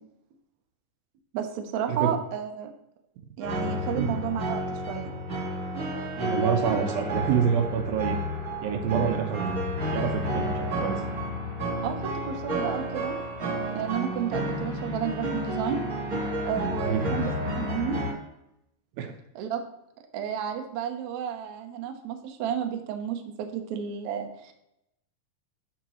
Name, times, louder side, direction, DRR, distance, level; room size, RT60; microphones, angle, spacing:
voice 1, 1.3-2.7 3.4-5.1 11.8-13.2 13.7-15.8 16.4-18.0 19.3-19.6 20.1-24.5, right 8 dB, 90° right, 5 dB, 1.6 m, -32 dB
sound 1, 3.4-18.1, equal, 40° right, 1.2 m, -31 dB
voice 2, 6.2-8.2 8.6-9.5 9.9-11.0 16.8-17.0 19.0-19.1, right 8 dB, 70° right, 4 dB, 2.6 m, -27 dB
11.5 x 5.1 x 3.1 m, 0.83 s
omnidirectional pair, 4.5 m